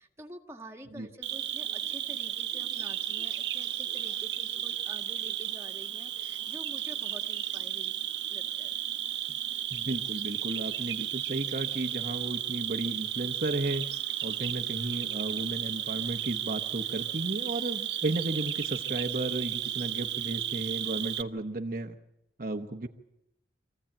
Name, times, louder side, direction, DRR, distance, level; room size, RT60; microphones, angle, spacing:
voice 1, 0.0-7.9 8.3-8.8, right 1 dB, 15° right, 1 dB, 1.8 m, -48 dB
Cricket, 1.2-21.2, right 11 dB, 70° right, 1.2 m, -34 dB
Laughter, 1.8-5.7 6.2-6.6, left 1 dB, 70° left, 4.7 m, -60 dB
voice 2, 9.7-13.8 14.2-21.9 22.4-22.9, right 2 dB, 50° right, 3 dB, 1.0 m, -34 dB
25.5 x 16.0 x 8.9 m, 0.89 s
head